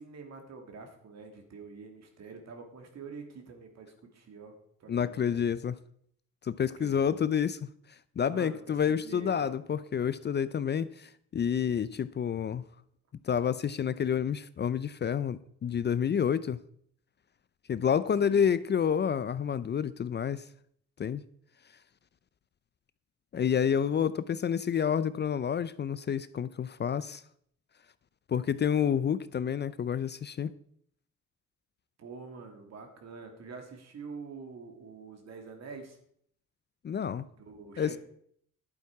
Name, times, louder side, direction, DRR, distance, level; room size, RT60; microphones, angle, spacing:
voice 1, 0.0-4.5 4.8-5.4 6.8-7.0 8.2-9.6 18.2-18.5 32.0-36.0 37.3-38.0, right 4 dB, 60° right, 2.6 m, -46 dB
voice 2, 4.9-5.7 6.5-7.6 8.2-12.6 13.2-16.6 17.7-20.4 21.0-21.2 23.3-27.2 28.3-30.5 36.8-37.2 37.8-38.0, left 8 dB, 35° left, 0.5 m, -29 dB
11.5 x 8.4 x 4.7 m
cardioid pair, 90°, 30 cm